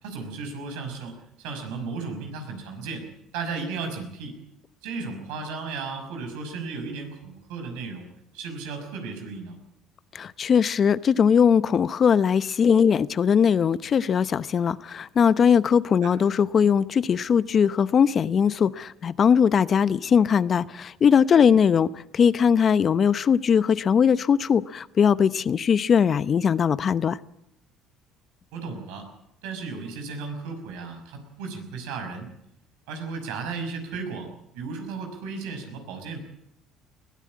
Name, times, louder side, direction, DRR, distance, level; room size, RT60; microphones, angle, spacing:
voice 1, 0.0-3.1 3.3-4.4 4.8-8.1 8.3-9.6 16.0-16.1 28.5-29.1 29.4-32.3 32.9-36.2, right 4 dB, 85° right, 5 dB, 5.8 m, -35 dB
voice 2, 10.1-27.2, left 7 dB, 45° left, 17 dB, 0.8 m, -20 dB
21.5 x 15.5 x 8.6 m, 0.79 s
supercardioid pair, 90°, 0 cm